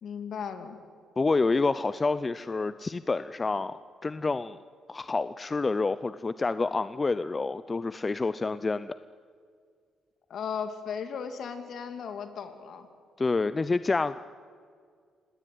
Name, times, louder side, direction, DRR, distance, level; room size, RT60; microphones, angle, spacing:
voice 1, 0.0-0.8 10.3-12.9, left 6 dB, 60° left, 8 dB, 2.7 m, -36 dB
voice 2, 1.2-4.6 4.9-8.9 13.2-14.2, left 3 dB, 25° left, 14 dB, 0.5 m, -28 dB
26.0 x 18.0 x 9.4 m, 2.1 s
cardioid pair, 105°, 0 cm